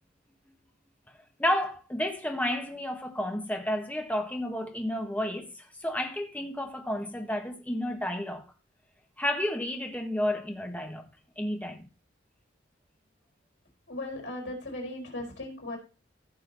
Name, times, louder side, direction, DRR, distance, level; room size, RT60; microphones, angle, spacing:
voice 1, 1.4-8.4 9.2-11.1 11.4-11.9, left 1 dB, 10° left, 1.5 m, -31 dB
voice 2, 13.9-15.8, left 1 dB, 75° left, 4.7 m, -37 dB
15.5 x 6.4 x 4.1 m
head